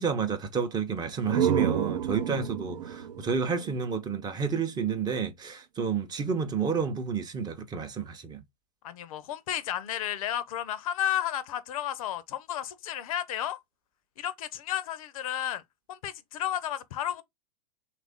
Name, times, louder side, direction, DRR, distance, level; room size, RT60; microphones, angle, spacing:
voice 1, 0.0-8.4, right 5 dB, 20° right, 0.6 m, -30 dB
sound 1, 1.0-4.7, right 9 dB, 80° right, 0.6 m, -30 dB
voice 2, 8.8-13.6 14.2-15.6 15.9-17.2, left 11 dB, 60° left, 0.5 m, -32 dB
3.4 x 2.4 x 3.4 m
hypercardioid pair, 110°, 20 cm